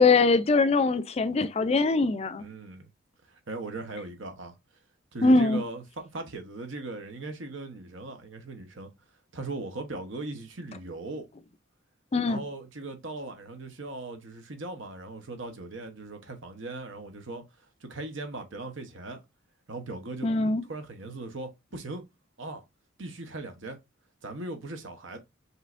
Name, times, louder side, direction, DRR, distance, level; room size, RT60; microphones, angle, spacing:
voice 1, 0.0-2.4 5.2-5.6 12.1-12.4 20.2-20.6, left 3 dB, 30° left, 0.4 m, -22 dB
voice 2, 2.4-2.9 3.3-4.6 5.1-8.9 9.3-11.3 12.3-17.4 17.8-19.2 19.7-22.0 22.4-22.6 23.0-23.8 24.2-25.2, right 2 dB, 75° right, 1.0 m, -39 dB
5.4 x 3.2 x 2.5 m
head